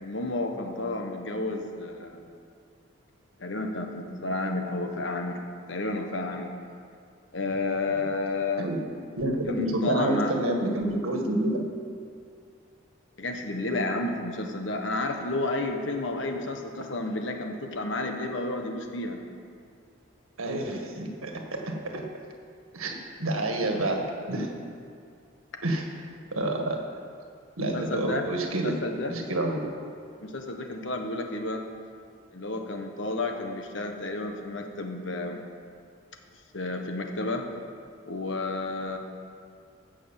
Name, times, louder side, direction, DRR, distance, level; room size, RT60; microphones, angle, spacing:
voice 1, 0.0-2.3 3.4-5.4 5.7-6.5 7.3-8.7 9.5-10.3 13.2-19.2 27.6-29.2 29.5-29.6 30.2-31.6 32.3-35.4 36.5-37.5 38.0-39.0, left 2 dB, 60° left, 4 dB, 1.3 m, -31 dB
voice 2, 9.2-11.6 20.4-22.0 22.7-24.5 25.6-25.9 26.3-26.8 27.6-28.8 29.1-29.7 35.2-35.4, right 1 dB, 90° right, 2 dB, 1.8 m, -28 dB
15.0 x 6.4 x 7.4 m, 2.3 s
head